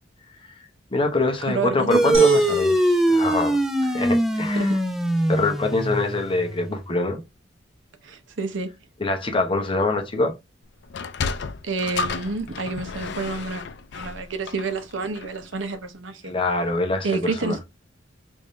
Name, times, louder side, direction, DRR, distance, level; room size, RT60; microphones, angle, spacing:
voice 1, 0.9-2.7 3.1-4.8 5.3-7.2 9.0-10.3 16.2-17.6, left 2 dB, 30° left, 0.8 m, -24 dB
voice 2, 1.5-2.2 4.5-4.8 8.0-8.7 11.6-13.6 13.9-16.3 17.0-17.6, right 4 dB, 80° right, 0.7 m, -29 dB
sound 1, 1.9-6.8, right 1 dB, ahead, 0.4 m, -22 dB
sound 2, 2.1-4.6, right 2 dB, 30° right, 1.4 m, -36 dB
Sliding door, 10.8-15.5, left 4 dB, 65° left, 0.4 m, -32 dB
3.5 x 2.6 x 3.0 m
head